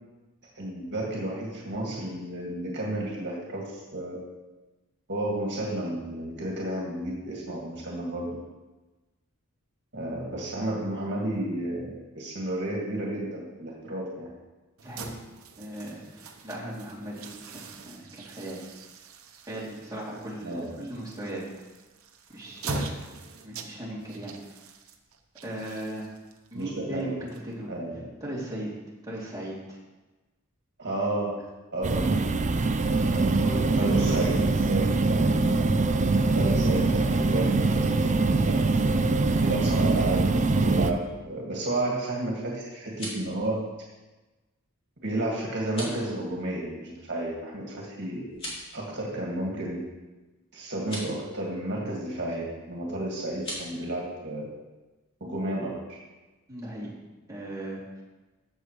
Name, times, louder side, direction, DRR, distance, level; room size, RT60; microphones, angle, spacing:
voice 1, 0.6-4.2 5.1-8.4 9.9-14.3 20.4-20.7 26.5-27.1 27.7-28.0 30.8-31.4 31.7-32.2 33.1-34.8 35.1-38.8 39.4-40.3 40.6-43.7 45.0-48.2 48.7-49.8 50.5-54.4 55.2-55.8, right 1 dB, 55° right, -3 dB, 2.0 m, -32 dB
voice 2, 14.8-15.1 15.6-18.7 19.4-21.4 22.3-22.9 23.4-24.3 25.4-26.1 26.5-27.7 28.2-28.7 29.0-29.8 33.4-34.1 56.5-56.9 57.3-58.0, right 1 dB, 20° right, -7 dB, 2.8 m, -37 dB
sound 1, 14.8-27.9, right 3 dB, 85° right, 0.9 m, -42 dB
sound 2, 31.8-40.9, right 3 dB, 35° right, 0.5 m, -23 dB
sound 3, 42.7-43.3 45.6-46.0 48.3-48.7 50.8-51.1 53.3-53.7, equal, 25° left, 2.7 m, -38 dB
14.5 x 6.8 x 3.2 m, 1.2 s
head